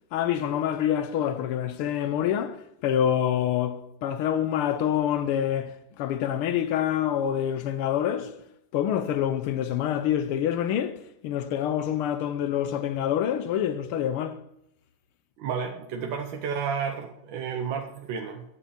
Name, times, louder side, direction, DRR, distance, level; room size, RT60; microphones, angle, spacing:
voice 1, 0.1-8.4 8.7-14.4, left 10 dB, 85° left, 1.6 m, -26 dB
voice 2, 15.4-18.4, right 6 dB, 70° right, 1.6 m, -31 dB
9.0 x 7.1 x 7.1 m
omnidirectional pair, 2.4 m